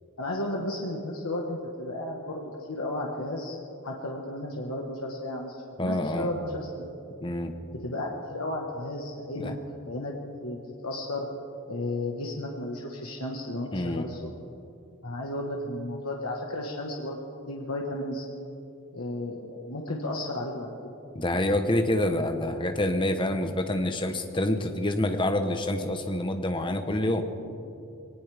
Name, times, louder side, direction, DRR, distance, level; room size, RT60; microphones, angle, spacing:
voice 1, 0.2-3.6 3.8-7.0 7.7-9.5 9.8-11.3 11.7-14.3 15.0-18.2 18.9-20.8 27.4-27.5, left 1 dB, 80° left, -1 dB, 1.4 m, -34 dB
voice 2, 5.8-6.3 7.2-7.5 9.3-9.5 13.7-14.1 21.1-27.2, left 1 dB, 20° left, 6 dB, 1.0 m, -27 dB
22.0 x 18.5 x 3.5 m, 2.7 s
head